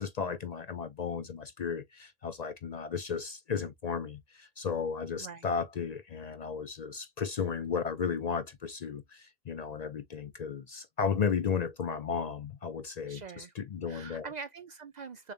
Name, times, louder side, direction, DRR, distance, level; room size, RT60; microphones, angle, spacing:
voice 1, 0.0-14.3, left 6 dB, 50° left, 0.5 m, -34 dB
voice 2, 13.1-13.5 13.9-15.3, right 5 dB, 55° right, 0.5 m, -44 dB
6.7 x 2.3 x 2.6 m
omnidirectional pair, 1.0 m